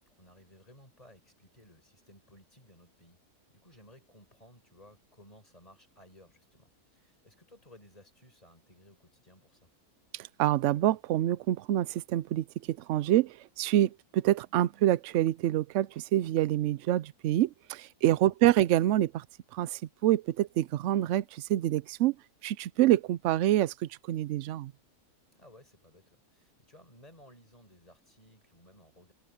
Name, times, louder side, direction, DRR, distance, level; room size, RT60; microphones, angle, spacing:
voice 1, 0.2-3.2 3.5-9.6 18.3-18.4 25.3-29.1, left 1 dB, 25° left, 5.8 m, -58 dB
voice 2, 10.1-19.2 19.5-22.1 22.4-24.7, right 13 dB, 70° right, 0.7 m, -27 dB
omnidirectional pair, 1.7 m